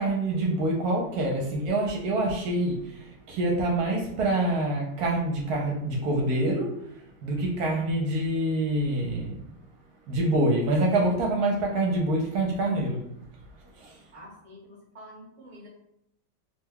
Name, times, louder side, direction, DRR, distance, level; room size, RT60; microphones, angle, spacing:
voice 1, 0.0-6.8 7.2-9.4 10.1-13.0 13.8-14.0, right 1 dB, 75° right, -1 dB, 1.1 m, -26 dB
voice 2, 14.1-15.7, equal, 25° right, -3 dB, 0.8 m, -47 dB
3.1 x 2.2 x 3.5 m, 0.76 s
omnidirectional pair, 1.8 m